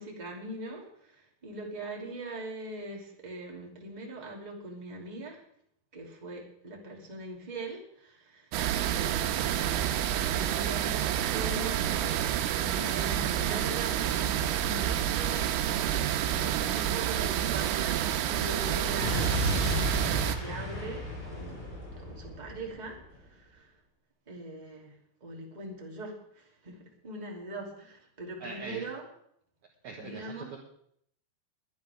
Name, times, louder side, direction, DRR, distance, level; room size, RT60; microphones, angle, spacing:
voice 1, 0.0-5.4 5.9-8.5 8.8-9.5 10.1-12.3 12.5-19.3 20.4-21.6 22.0-23.7 24.3-24.9 25.2-29.1 29.9-30.5, right 2 dB, 15° right, -2 dB, 1.9 m, -42 dB
sound 1, 8.5-20.4, right 11 dB, 90° right, 3.4 m, -29 dB
Explosion, 19.0-23.1, left 2 dB, 50° left, 7.8 m, -34 dB
voice 2, 28.4-28.9 29.8-30.3, right 4 dB, 75° right, 0 dB, 1.7 m, -41 dB
22.0 x 11.5 x 3.6 m, 0.68 s
omnidirectional pair, 5.6 m